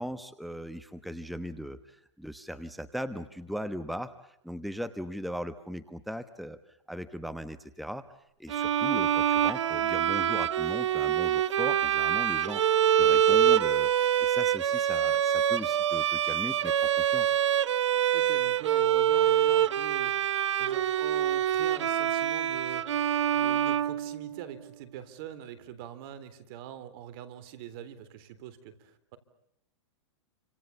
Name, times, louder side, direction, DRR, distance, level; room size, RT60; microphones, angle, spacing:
voice 1, 0.0-8.0 8.4-12.6 13.0-17.3, equal, ahead, 11 dB, 1.2 m, -38 dB
Bowed string instrument, 8.5-24.6, right 10 dB, 80° right, 1.0 m, -25 dB
voice 2, 18.1-20.2 20.6-22.9 23.3-29.2, right 10 dB, 55° right, 15 dB, 3.7 m, -43 dB
30.0 x 26.0 x 7.1 m, 0.76 s
hypercardioid pair, 120°, 15 cm